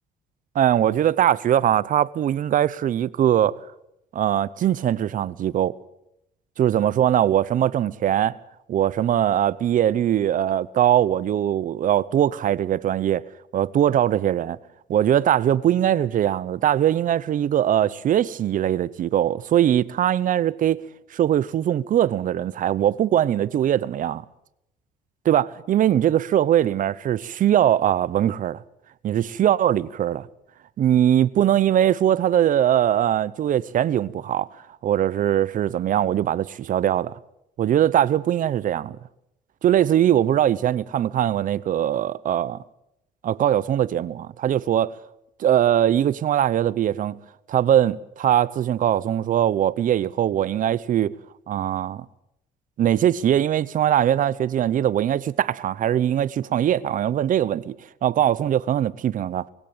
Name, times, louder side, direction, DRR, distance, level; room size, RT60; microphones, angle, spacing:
voice 1, 0.5-3.6 4.1-5.7 6.6-8.3 8.7-13.2 13.5-14.6 14.9-20.8 21.1-24.2 25.2-28.6 29.0-30.3 30.8-34.5 34.8-37.1 37.6-39.0 39.6-42.6 43.2-45.0 45.4-47.2 47.5-51.1 51.5-52.0 52.8-57.7 58.0-59.4, right 11 dB, 50° right, 0.8 m, -21 dB
21.0 x 16.5 x 8.8 m
cardioid pair, 110°, 17 cm